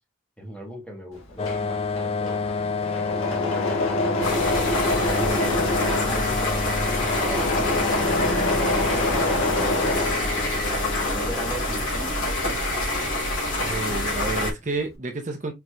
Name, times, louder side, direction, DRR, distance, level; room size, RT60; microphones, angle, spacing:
voice 1, 0.4-4.0 4.5-10.1 11.0-12.6, right 1 dB, 5° left, 1.2 m, -38 dB
Engine / Mechanisms, 1.2-10.8 11.1-13.5 13.7-14.5, left 1 dB, 80° left, 1.4 m, -27 dB
sound 1, 1.4-12.8, left 4 dB, 30° left, 0.3 m, -30 dB
sound 2, 4.2-14.5, left 1 dB, 60° left, 2.6 m, -27 dB
voice 2, 5.0-5.7 13.6-15.5, right 2 dB, 35° right, 0.7 m, -31 dB
4.6 x 3.9 x 2.2 m
head